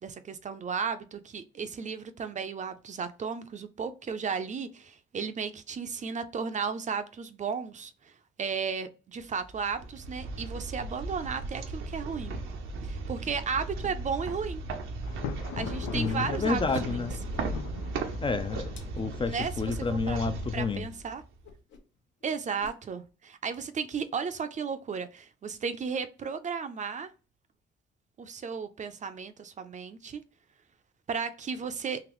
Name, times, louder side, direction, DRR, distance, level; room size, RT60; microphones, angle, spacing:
voice 1, 0.0-8.1 8.4-12.4 12.8-14.6 15.6-17.0 19.2-19.7 20.1-20.2 20.5-21.2 22.2-27.1 28.2-30.2 31.1-32.0, right 6 dB, 40° right, 0.5 m, -34 dB
sound 1, 9.4-21.5, right 3 dB, 90° right, 0.7 m, -37 dB
Thunder, 15.0-19.1, left 9 dB, 85° left, 0.5 m, -40 dB
voice 2, 15.9-17.1 18.2-18.7 18.9-20.9, left 4 dB, 25° left, 0.4 m, -30 dB
Whoosh swoosh swish, 16.5-16.6 16.9-17.8 18.1-20.0 20.4-20.7 20.9-21.1 21.4-22.0 22.2-22.8, left 5 dB, 65° left, 0.9 m, -51 dB
3.9 x 2.9 x 3.0 m
cardioid pair, 90°, 20 cm